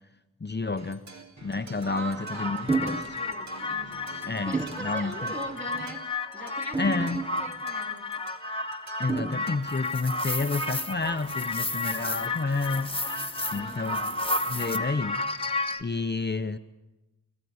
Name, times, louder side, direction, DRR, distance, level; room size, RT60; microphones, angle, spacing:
voice 1, 0.4-1.0 1.4-3.0 4.3-4.5 4.8-5.1 6.8-7.2 9.0-13.0 13.5-14.0 14.5-15.2 15.8-16.6, left 3 dB, 30° left, 8 dB, 0.8 m, -30 dB
sound 1, 0.8-15.2, right 3 dB, 60° right, 2.8 m, -49 dB
voice 2, 1.8-4.1 4.5-8.2 13.5-14.2, right 1 dB, 35° right, 1 dB, 3.1 m, -42 dB
sound 2, 2.2-15.8, left 2 dB, 15° left, 1.2 m, -32 dB
sound 3, 2.7-3.1 3.6-3.8 4.5-4.9 5.7-6.0 6.7-7.6 9.1-9.6, right 3 dB, 20° right, 0.8 m, -31 dB
26.5 x 15.0 x 9.5 m, 1.0 s
wide cardioid pair, 85°, 32 cm